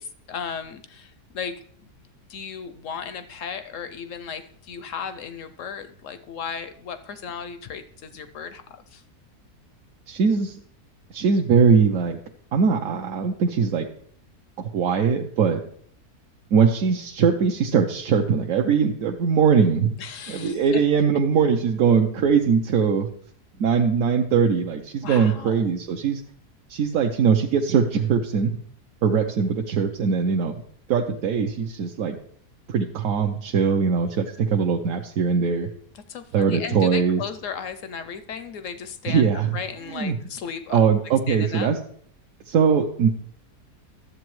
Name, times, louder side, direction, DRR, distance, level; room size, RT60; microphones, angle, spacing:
voice 1, 0.0-1.9 2.3-9.0 20.0-20.8 25.0-25.7 35.9-40.8 41.3-41.7, left 7 dB, 70° left, 10 dB, 0.8 m, -35 dB
voice 2, 10.1-10.6 11.1-12.2 12.5-13.9 14.6-15.6 16.5-19.9 20.3-23.1 23.6-26.2 26.7-28.6 29.0-30.5 30.9-32.2 32.7-35.7 36.3-37.2 39.1-39.5 39.9-40.2 40.7-41.8 42.5-43.1, right 6 dB, 65° right, 2 dB, 1.0 m, -21 dB
12.5 x 7.6 x 3.1 m, 0.62 s
omnidirectional pair, 1.7 m